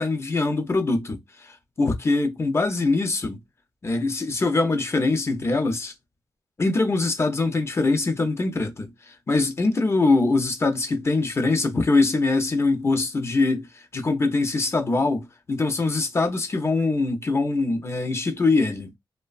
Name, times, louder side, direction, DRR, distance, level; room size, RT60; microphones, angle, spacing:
voice 1, 0.0-3.4 3.8-5.9 6.6-13.7 13.9-18.9, left 3 dB, 30° left, 0.6 m, -23 dB
2.9 x 2.2 x 2.4 m
wide cardioid pair, 120°, 9 cm